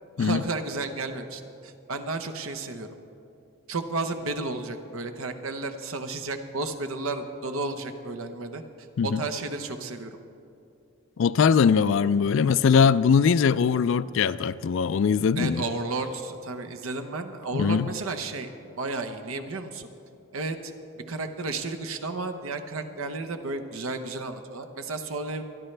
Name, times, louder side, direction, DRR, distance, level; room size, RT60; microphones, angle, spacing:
voice 1, 0.2-2.9 3.7-8.6 9.0-10.1 15.4-18.5 18.8-19.9 20.3-20.7 21.1-25.4, right 3 dB, 85° right, 1.0 m, -32 dB
voice 2, 11.2-15.6 17.5-17.9, left 6 dB, 65° left, 0.3 m, -21 dB
25.5 x 10.5 x 3.3 m
head